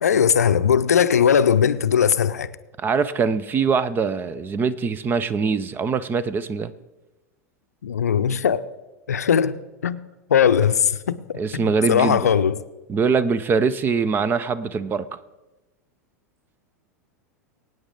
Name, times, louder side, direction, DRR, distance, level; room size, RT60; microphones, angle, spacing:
voice 1, 0.0-2.5 7.8-8.6 9.1-9.5 9.8-10.0 10.3-12.6, left 8 dB, 70° left, 13 dB, 0.6 m, -19 dB
voice 2, 2.8-6.7 11.4-12.2 12.9-15.2, right 5 dB, 25° right, 16 dB, 0.6 m, -23 dB
23.0 x 9.1 x 3.8 m, 1.1 s
figure-of-eight pair, 90°, 9 cm